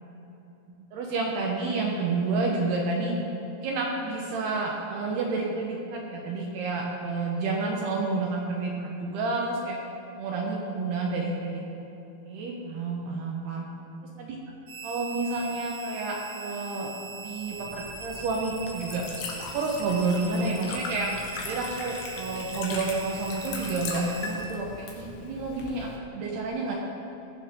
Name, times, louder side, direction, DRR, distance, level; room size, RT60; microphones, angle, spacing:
voice 1, 0.9-3.2 3.5-9.8 10.2-11.6 12.2-13.7 14.2-14.3 14.8-16.9 17.2-19.1 19.5-21.1 21.4-26.8, right 3 dB, 70° right, -1 dB, 2.6 m, -30 dB
sound 1, 14.7-24.3, right 4 dB, 50° right, 2.8 m, -41 dB
Liquid, 17.4-26.0, left 4 dB, 70° left, 3.4 m, -39 dB
18.0 x 10.5 x 3.7 m, 2.9 s
omnidirectional pair, 5.6 m